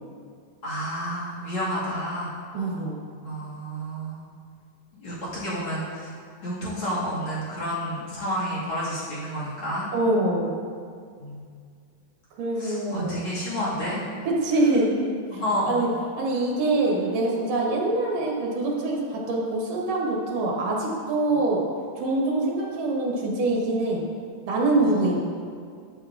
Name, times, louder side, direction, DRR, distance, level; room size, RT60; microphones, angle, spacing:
voice 1, 0.6-2.3 3.2-4.2 5.0-6.1 6.4-9.9 11.2-11.4 12.6-14.0 15.3-15.8 24.8-25.2, equal, 45° left, -9 dB, 2.3 m, -30 dB
voice 2, 2.5-3.0 9.9-10.5 12.4-13.3 14.3-15.9 16.2-21.7 22.0-24.0 24.5-25.2, right 2 dB, 70° right, -2 dB, 2.8 m, -24 dB
13.0 x 6.8 x 2.5 m, 2.1 s
omnidirectional pair, 4.0 m